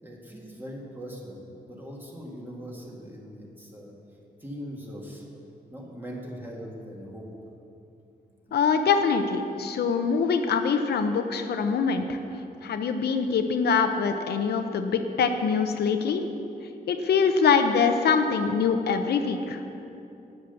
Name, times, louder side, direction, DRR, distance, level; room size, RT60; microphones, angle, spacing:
voice 1, 0.0-3.9 4.4-5.2 5.7-7.3 8.5-8.6, equal, 10° right, -3 dB, 2.0 m, -40 dB
voice 2, 8.5-12.2 12.6-16.2 16.9-19.6, left 5 dB, 85° left, 6 dB, 0.7 m, -24 dB
10.0 x 7.8 x 6.9 m, 2.8 s
wide cardioid pair, 120°, 16 cm